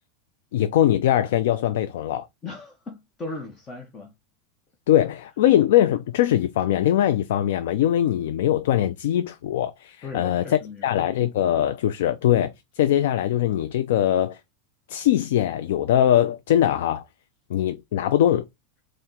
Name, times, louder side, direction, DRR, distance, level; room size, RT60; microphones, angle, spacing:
voice 1, 0.5-2.3 4.9-14.4 14.9-17.0 17.5-18.5, left 11 dB, 75° left, 0.3 m, -21 dB
voice 2, 2.4-4.1 10.0-10.9, left 3 dB, 25° left, 0.7 m, -37 dB
4.3 x 2.1 x 3.6 m
supercardioid pair, 145°, 0 cm